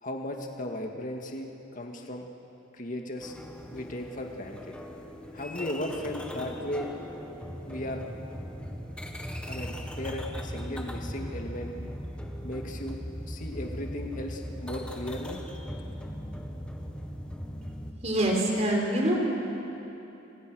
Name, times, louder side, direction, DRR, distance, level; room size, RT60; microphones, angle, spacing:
voice 1, 0.0-2.3 2.7-3.4 3.7-4.7 5.3-6.9 7.7-8.0 9.5-11.7 12.4-13.0 13.3-15.4, left 1 dB, 45° left, 2 dB, 2.1 m, -36 dB
sound 1, 3.2-17.9, equal, 5° left, 1.7 m, -39 dB
voice 2, 18.0-19.1, right 1 dB, 35° right, 0 dB, 4.5 m, -25 dB
27.0 x 26.5 x 6.4 m, 3.0 s
head